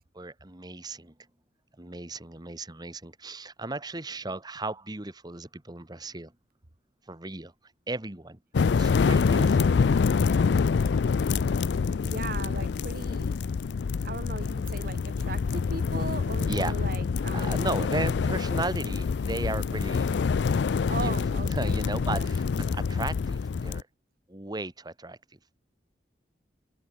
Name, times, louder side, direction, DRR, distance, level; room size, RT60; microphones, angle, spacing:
voice 1, 0.1-1.1 1.8-6.3 7.1-7.5 7.9-8.4 8.8-9.7 16.5-16.8 17.3-20.1 21.0-23.8 24.3-25.2, right 2 dB, 25° right, 1.4 m, -35 dB
sound 1, 8.5-23.8, left 5 dB, 80° left, 0.4 m, -26 dB
voice 2, 12.0-13.4 14.0-17.6 20.9-21.8 22.1-22.3, right 3 dB, 55° right, 2.0 m, -38 dB
head